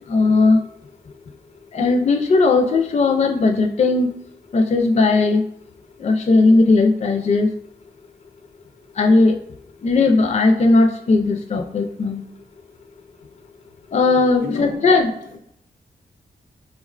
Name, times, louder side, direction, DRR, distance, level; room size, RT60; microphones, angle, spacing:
voice 1, 0.1-0.6 1.7-4.1 4.5-5.4 6.0-7.5 9.0-9.3 9.8-12.2 13.9-15.1, left 3 dB, 40° left, 0.4 m, -17 dB
voice 2, 14.4-15.0 15.3-15.4, left 6 dB, 85° left, 0.6 m, -32 dB
4.2 x 2.2 x 2.4 m
cardioid pair, 45°, 18 cm